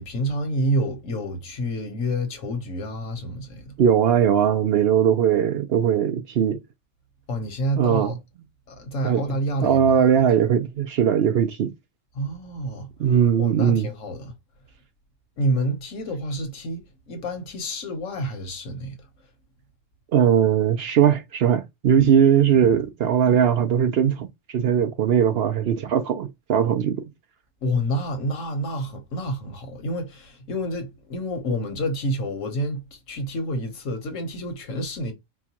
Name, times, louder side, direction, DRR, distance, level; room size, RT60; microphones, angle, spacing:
voice 1, 0.0-3.7 7.3-8.2 8.7-10.0 12.1-12.9 13.4-14.3 15.4-19.0 27.6-35.1, equal, 80° left, 1.3 m, -28 dB
voice 2, 3.8-6.6 7.8-8.2 9.0-9.2 9.6-11.7 13.0-13.9 20.1-27.0, right 8 dB, 65° right, 0.7 m, -20 dB
4.5 x 2.2 x 2.8 m
omnidirectional pair, 1.3 m